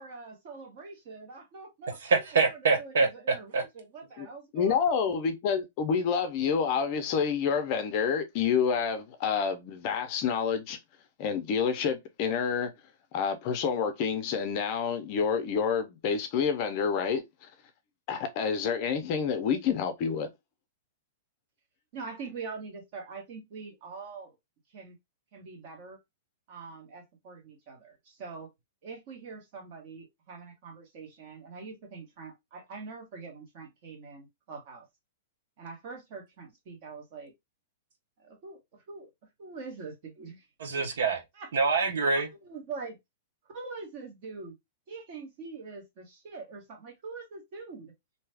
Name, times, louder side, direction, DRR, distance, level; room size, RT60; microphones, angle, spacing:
voice 1, 0.0-5.2 21.9-24.3 24.7-25.0 25.3-26.0 26.5-28.5 28.8-34.9 35.6-37.3 38.2-39.1 39.4-40.5 41.3-41.5 42.1-43.0 43.5-44.5 44.9-47.9, right 4 dB, 35° right, 1.1 m, -44 dB
voice 2, 2.1-3.1 3.5-3.6 40.6-41.2 41.5-42.3, right 4 dB, 75° right, 0.9 m, -25 dB
voice 3, 4.5-10.8 11.2-12.7 13.1-17.2 18.1-20.3, left 6 dB, 30° left, 0.5 m, -28 dB
2.7 x 2.3 x 3.3 m
supercardioid pair, 175°, 0 cm